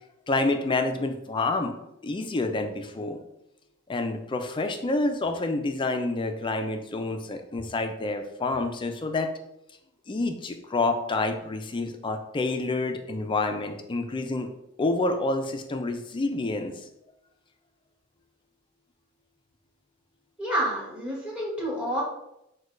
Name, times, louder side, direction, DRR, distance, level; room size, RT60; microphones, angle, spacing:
voice 1, 0.3-1.7 2.0-3.2 3.9-9.3 10.1-14.5 14.8-16.9, left 2 dB, 25° left, 6 dB, 0.3 m, -28 dB
voice 2, 20.4-22.0, right 1 dB, 5° right, -5 dB, 1.3 m, -29 dB
6.1 x 2.2 x 2.5 m, 0.84 s
head